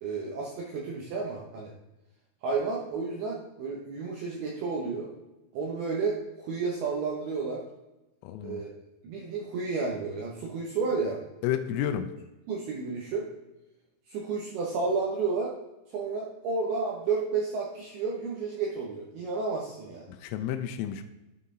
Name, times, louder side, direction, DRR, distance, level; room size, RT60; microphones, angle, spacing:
voice 1, 0.0-1.7 2.4-5.1 5.5-7.6 8.4-8.7 9.0-11.2 12.5-13.3 14.1-15.5 15.9-20.0, right 4 dB, 90° right, -2 dB, 2.2 m, -31 dB
voice 2, 8.2-8.6 11.4-12.1 20.1-21.0, left 10 dB, 85° left, 7 dB, 3.1 m, -31 dB
12.0 x 4.2 x 3.7 m, 1.0 s
omnidirectional pair, 5.9 m